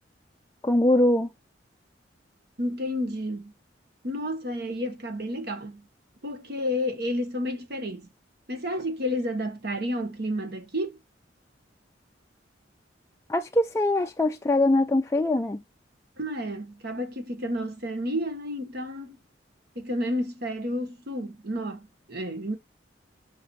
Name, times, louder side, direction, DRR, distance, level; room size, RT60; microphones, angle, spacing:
voice 1, 0.6-1.3 13.3-15.6, left 1 dB, 15° left, 0.4 m, -22 dB
voice 2, 2.6-3.5 4.0-5.8 6.2-8.1 8.5-11.0 16.2-19.2 19.7-22.6, equal, 60° right, 1.4 m, -31 dB
8.0 x 5.9 x 3.1 m
head